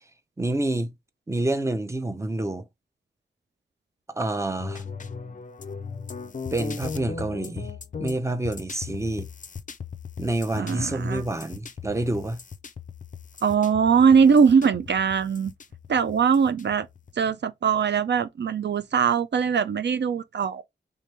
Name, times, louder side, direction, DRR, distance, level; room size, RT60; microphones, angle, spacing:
voice 1, 0.4-0.9 1.3-2.6 4.1-4.8 6.5-7.7 8.0-9.3 10.2-12.4, right 2 dB, 15° right, 0.6 m, -28 dB
sound 1, 4.6-17.1, left 6 dB, 45° left, 0.4 m, -38 dB
voice 2, 10.5-11.2 13.4-15.5 15.9-16.9 17.2-20.6, right 6 dB, 70° right, 0.4 m, -21 dB
3.3 x 3.0 x 3.3 m
wide cardioid pair, 75°, 19 cm